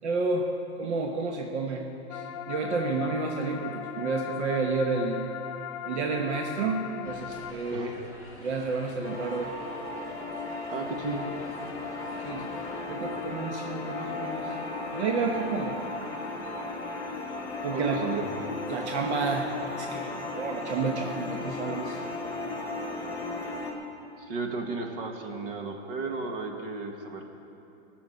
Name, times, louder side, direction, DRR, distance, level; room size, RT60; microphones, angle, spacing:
voice 1, 0.0-0.5 0.8-5.2 5.9-7.9 8.4-9.5 12.2-12.5 12.9-14.6 14.9-16.1 16.5-16.6 17.6-18.0 18.7-22.1, right 4 dB, 80° right, 2 dB, 1.3 m, -31 dB
sound 1, 2.1-7.5, left 10 dB, 25° left, 0.3 m, -38 dB
sound 2, 7.0-12.8, left 1 dB, 10° right, 1.9 m, -48 dB
sound 3, 9.0-23.7, left 3 dB, 10° left, 1.3 m, -35 dB
voice 2, 10.7-11.3 17.7-18.2 24.2-27.2, right 3 dB, 55° right, 3 dB, 1.8 m, -33 dB
17.5 x 7.1 x 8.0 m, 2.9 s
supercardioid pair, 165°, 33 cm